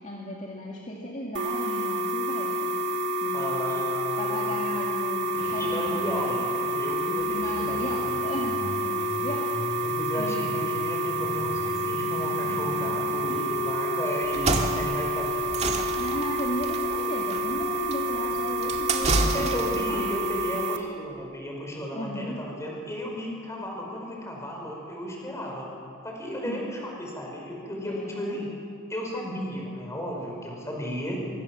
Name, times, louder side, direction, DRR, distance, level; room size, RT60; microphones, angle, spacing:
voice 1, 0.0-2.8 3.2-3.9 4.2-6.2 7.3-9.7 10.2-10.4 13.3-14.1 16.0-20.1 21.9-22.5 26.4-26.7 27.8-28.4, left 1 dB, 35° left, -2 dB, 2.3 m, -36 dB
sound 1, 1.3-20.8, right 1 dB, 55° right, 2.0 m, -28 dB
voice 2, 3.3-4.6 5.6-8.1 9.8-15.6 19.3-25.7 26.0-28.5 28.9-31.2, equal, 15° left, -1 dB, 5.6 m, -34 dB
sound 2, 5.3-13.5, equal, 60° left, 6.8 m, -40 dB
sound 3, 14.2-19.9, right 3 dB, 30° right, 2.1 m, -29 dB
25.0 x 24.0 x 7.5 m, 2.5 s
head